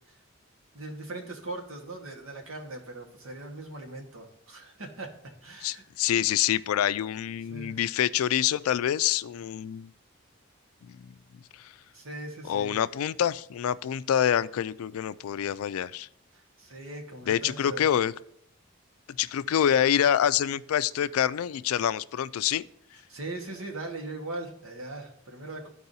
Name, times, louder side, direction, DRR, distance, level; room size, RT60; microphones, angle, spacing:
voice 1, 0.7-5.1 5.4-5.8 7.5-7.8 11.9-12.8 16.3-18.0 23.1-25.7, right 2 dB, 80° right, 2 dB, 1.5 m, -40 dB
voice 2, 5.6-9.9 10.8-11.1 11.6-11.7 12.5-16.1 17.3-18.1 19.2-22.6, left 10 dB, 90° left, 17 dB, 0.3 m, -26 dB
13.5 x 4.7 x 2.7 m, 0.70 s
head